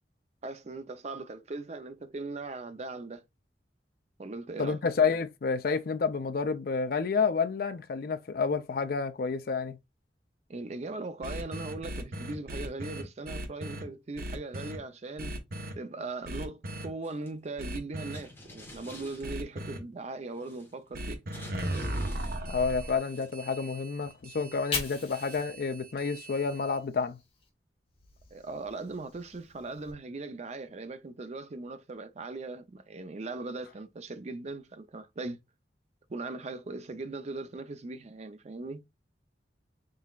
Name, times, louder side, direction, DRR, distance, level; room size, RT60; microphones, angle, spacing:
voice 1, 0.4-3.2 4.2-4.8 10.5-15.4 15.8-21.2 28.3-35.4 36.1-38.8, right 3 dB, 40° right, 0.5 m, -39 dB
voice 2, 4.6-9.8 22.5-27.2, left 5 dB, 55° left, 0.4 m, -29 dB
sound 1, 11.2-13.8 14.2-14.8 15.2-15.7 16.2-16.9 17.6-18.2 19.2-19.8 20.9-26.8, right 1 dB, 55° right, 0.9 m, -38 dB
sound 2, 17.0-17.3 18.1-19.8 20.3-21.0 21.3-23.6 23.9-24.2, left 1 dB, 15° left, 1.4 m, -50 dB
Fire, 24.3-27.5 27.9-29.9, left 5 dB, 35° left, 1.2 m, -41 dB
4.2 x 3.9 x 2.3 m
head